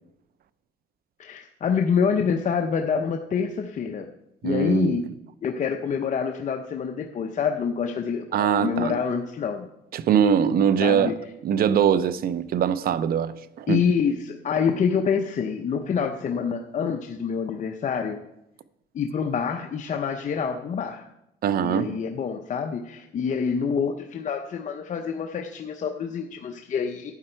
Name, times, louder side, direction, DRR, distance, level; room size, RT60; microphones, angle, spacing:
voice 1, 1.2-4.1 4.4-5.0 5.4-9.7 10.8-11.1 13.7-18.2 18.9-21.1 21.6-27.2, left 6 dB, 40° left, 0.7 m, -26 dB
voice 2, 4.4-5.1 8.3-9.0 9.9-11.1 11.4-13.8 21.4-22.0, right 8 dB, 55° right, 0.6 m, -22 dB
12.0 x 8.7 x 4.5 m
cardioid pair, 110°, 18 cm